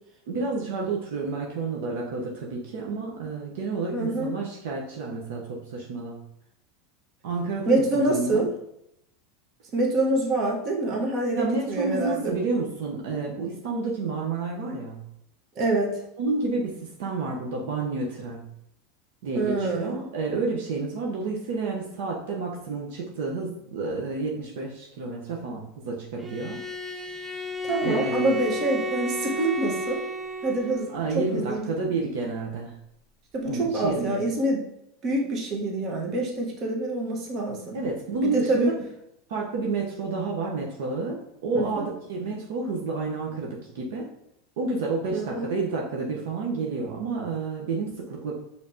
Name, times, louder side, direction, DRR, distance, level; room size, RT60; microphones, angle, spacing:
voice 1, 0.3-6.2 7.2-8.5 11.3-15.0 16.2-18.5 19.2-26.6 27.8-28.4 30.9-32.8 33.4-34.2 37.7-38.7 39.3-44.1 44.6-48.4, right 3 dB, 75° right, -2 dB, 0.8 m, -30 dB
voice 2, 3.9-4.3 7.7-8.5 9.7-12.3 15.5-16.0 19.3-20.0 27.6-30.0 30.4-31.7 33.3-34.7 35.0-37.8 38.2-38.8 41.5-41.9 45.1-45.5, right 2 dB, 40° right, 0 dB, 1.1 m, -26 dB
Bowed string instrument, 26.2-30.9, left 1 dB, 10° right, 0.5 m, -32 dB
5.1 x 3.3 x 2.7 m, 0.79 s
hypercardioid pair, 105°, 0 cm